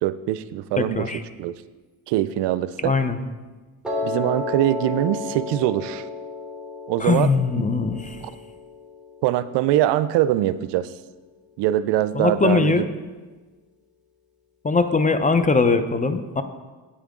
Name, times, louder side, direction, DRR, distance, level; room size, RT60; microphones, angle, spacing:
voice 1, 0.0-1.1 1.4-1.5 2.1-2.9 4.0-6.0 6.9-7.3 7.6-7.7 9.2-10.9 11.6-12.7, right 13 dB, 75° right, 14 dB, 0.5 m, -22 dB
voice 2, 0.8-1.2 2.8-3.2 7.0-8.3 12.1-12.9 14.6-16.4, left 4 dB, 20° left, 10 dB, 0.7 m, -21 dB
Piano, 3.8-10.0, left 3 dB, ahead, 2.5 m, -33 dB
8.8 x 8.7 x 3.7 m, 1.3 s
supercardioid pair, 75°, 41 cm